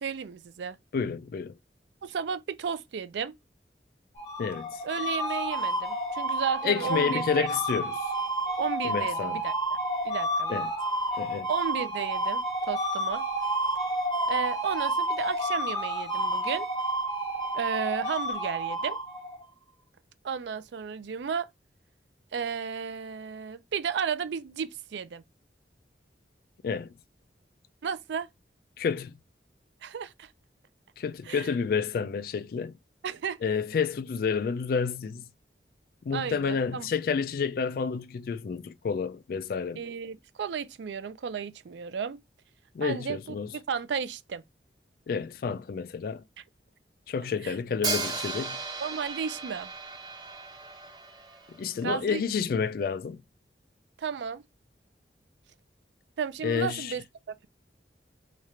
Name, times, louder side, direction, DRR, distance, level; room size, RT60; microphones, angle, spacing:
voice 1, 0.0-0.8 2.0-3.3 4.8-7.5 8.6-9.5 10.0-10.6 11.5-13.2 14.3-16.7 17.5-19.0 20.2-21.5 22.3-25.2 27.8-28.3 29.8-30.3 31.3-31.5 33.0-33.4 36.1-36.9 39.8-42.2 42.8-43.2 43.7-44.4 47.4-47.5 48.8-49.7 51.8-52.2 54.0-54.4 56.2-57.5, right 6 dB, 80° right, 0.4 m, -33 dB
voice 2, 0.9-1.6 4.4-4.8 6.6-8.1 8.8-9.4 10.5-10.7 11.2-11.5 26.6-26.9 28.8-29.1 31.0-32.8 33.4-35.2 36.0-39.8 42.7-43.5 45.1-46.2 47.1-48.6 51.5-53.2 56.4-57.0, left 6 dB, 55° left, 0.3 m, -30 dB
sound 1, 4.1-19.4, right 1 dB, 25° left, 1.3 m, -30 dB
Hi-hat, 47.8-51.8, right 3 dB, 25° right, 1.0 m, -35 dB
3.2 x 2.4 x 4.2 m
head